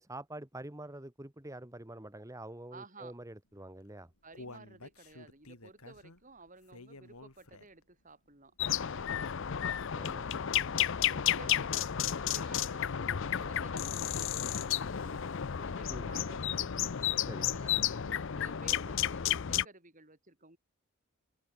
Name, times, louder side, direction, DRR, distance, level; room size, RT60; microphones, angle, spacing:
voice 1, 0.0-4.1 9.9-10.6 15.9-16.1 17.2-17.5, right 1 dB, 15° right, 1.3 m, -46 dB
voice 2, 2.7-3.2 4.2-9.4 10.2-16.9 17.4-20.6, right 3 dB, 35° right, 7.2 m, -55 dB
Human voice, 3.7-7.9 8.3-8.4 8.9-9.0, left 2 dB, 85° left, 7.9 m, -51 dB
sound 1, 8.6-19.6, left 10 dB, 55° left, 0.6 m, -32 dB
open air
head